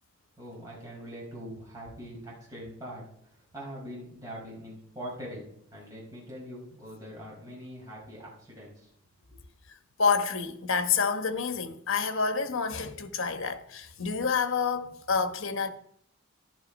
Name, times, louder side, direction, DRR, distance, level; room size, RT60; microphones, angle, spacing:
voice 1, 0.4-8.9, equal, 15° right, 5.5 m, -43 dB
voice 2, 10.0-15.7, left 5 dB, 75° left, 1.2 m, -28 dB
12.0 x 11.5 x 5.3 m
head